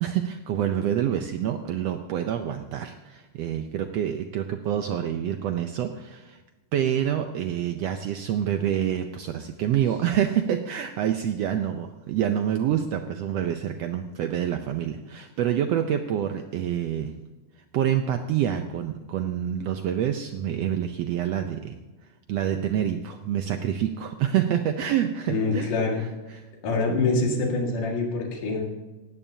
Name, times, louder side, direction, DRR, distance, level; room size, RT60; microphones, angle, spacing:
voice 1, 0.0-6.4 6.7-17.1 17.7-21.8 22.3-25.7 26.3-26.4, right 10 dB, 90° right, 7 dB, 1.4 m, -27 dB
voice 2, 25.3-26.0 26.6-28.6, left 3 dB, 85° left, -1 dB, 3.6 m, -25 dB
18.0 x 16.0 x 2.8 m, 1.1 s
omnidirectional pair, 3.7 m